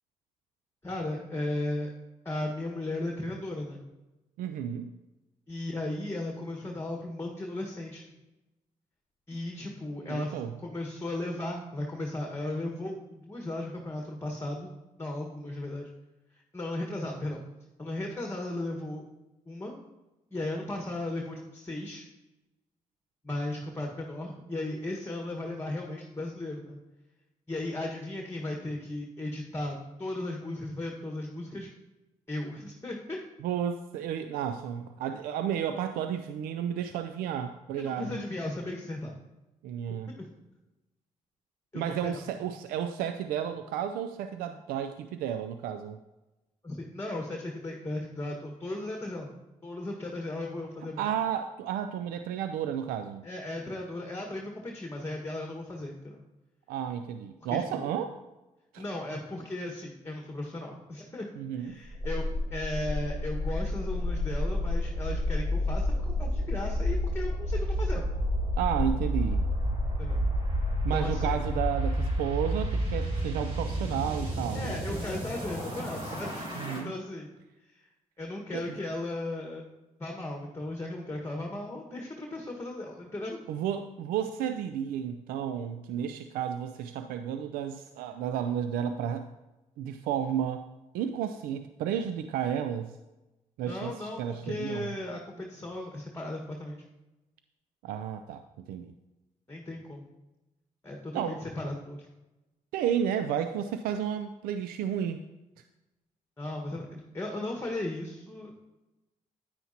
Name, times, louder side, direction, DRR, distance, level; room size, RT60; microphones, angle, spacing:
voice 1, 0.8-1.9 2.2-3.8 5.5-8.1 9.3-14.7 15.0-15.9 16.5-17.4 17.8-19.0 19.5-19.7 20.3-22.1 23.2-26.8 27.5-31.7 32.3-33.2 37.8-39.1 40.2-40.3 41.7-42.3 46.6-49.3 49.6-51.0 53.2-56.2 57.5-57.9 58.8-62.2 62.5-68.1 70.0-70.2 70.9-71.4 74.5-76.4 76.7-77.3 77.7-77.8 78.2-79.6 80.0-83.4 93.7-96.8 99.5-100.1 100.8-102.0 106.4-108.6, left 1 dB, 15° left, 1 dB, 1.5 m, -36 dB
voice 2, 4.4-4.9 10.0-10.5 33.4-38.2 39.6-40.1 41.7-46.0 51.0-53.2 56.7-58.1 58.7-58.8 61.4-61.8 68.6-69.4 70.8-74.8 76.5-76.9 78.5-78.7 83.5-89.3 89.8-90.6 90.9-93.0 93.6-94.9 97.8-98.4 98.7-98.9 101.1-101.4 102.7-105.2, right 9 dB, 90° right, 9 dB, 0.4 m, -32 dB
sound 1, 61.8-76.8, equal, 40° right, 3.5 m, -30 dB
9.5 x 9.3 x 2.8 m, 1.0 s
supercardioid pair, 55°, 15 cm